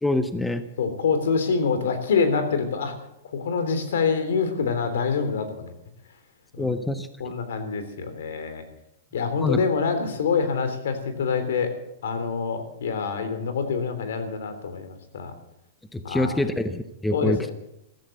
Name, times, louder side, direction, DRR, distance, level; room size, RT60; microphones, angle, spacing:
voice 1, 0.0-0.6 6.6-7.1 9.4-9.6 15.9-17.4, left 1 dB, 5° left, 10 dB, 0.6 m, -25 dB
voice 2, 0.8-2.9 3.3-5.7 6.5-6.7 7.2-8.6 9.1-11.7 12.0-15.3 16.0-16.4 17.1-17.5, left 5 dB, 80° left, 9 dB, 3.3 m, -26 dB
15.0 x 14.0 x 6.7 m, 0.83 s
supercardioid pair, 175°, 0 cm